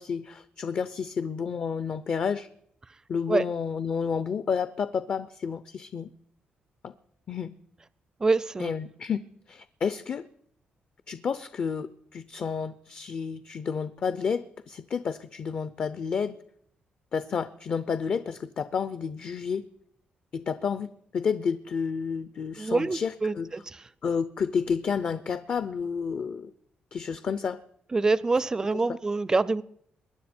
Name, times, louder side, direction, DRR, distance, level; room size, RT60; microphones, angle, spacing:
voice 1, 0.0-2.5 3.1-6.1 6.8-6.9 7.3-7.6 8.6-9.2 9.5-10.3 11.1-16.4 17.1-19.6 20.3-20.9 21.1-23.5 24.0-26.5 26.9-27.6 28.7-29.0, left 6 dB, 45° left, 13 dB, 0.5 m, -30 dB
voice 2, 8.2-8.7 22.6-23.6 27.9-29.6, right 3 dB, 20° right, 20 dB, 0.4 m, -25 dB
22.5 x 10.0 x 4.4 m, 0.68 s
cardioid pair, 135°, 3 cm